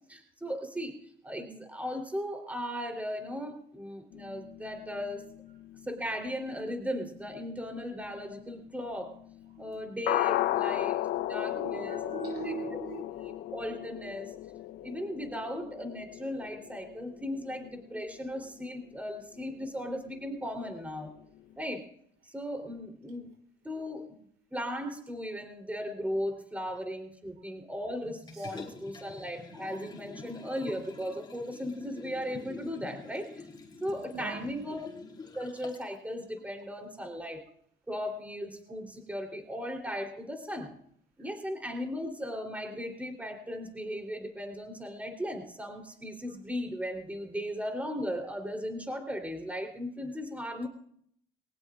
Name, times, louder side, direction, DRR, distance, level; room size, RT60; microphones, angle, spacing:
voice 1, 0.1-1.0 1.2-5.3 5.9-9.1 9.6-11.0 11.3-12.0 12.4-12.5 13.2-14.3 14.8-21.1 21.5-21.8 22.3-23.3 23.6-24.2 24.5-33.4 33.8-34.9 35.3-37.4 37.9-40.8 41.2-50.7, equal, 10° right, 3.4 m, -37 dB
sound 1, 4.1-18.9 19.2-19.4 19.6-19.7 20.1-20.2 20.6-20.7 20.9-21.0, left 14 dB, 80° left, 0.7 m, -36 dB
voice 2, 11.5-13.4 26.7-26.8 28.3-28.5 34.1-34.6 38.7-38.8, right 6 dB, 65° right, 2.8 m, -40 dB
Liquid, 28.3-35.9 36.4-36.5, left 3 dB, 25° left, 3.4 m, -47 dB
22.0 x 18.5 x 2.5 m
cardioid pair, 110°, 17 cm